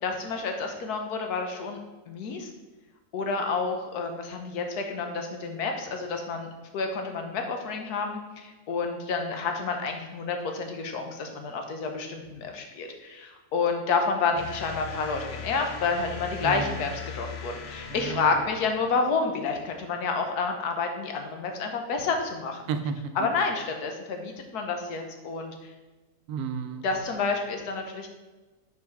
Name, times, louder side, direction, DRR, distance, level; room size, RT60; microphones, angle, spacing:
voice 1, 0.0-1.8 2.1-2.5 3.1-22.6 23.2-25.5 26.8-28.1, left 4 dB, 85° left, 4 dB, 1.4 m, -29 dB
sound 1, 14.4-19.1, left 6 dB, 60° left, 0.7 m, -40 dB
voice 2, 16.4-16.9 17.9-18.4 22.7-23.3 26.3-26.9, right 6 dB, 75° right, 8 dB, 1.0 m, -33 dB
5.6 x 4.7 x 4.6 m, 1.2 s
omnidirectional pair, 1.6 m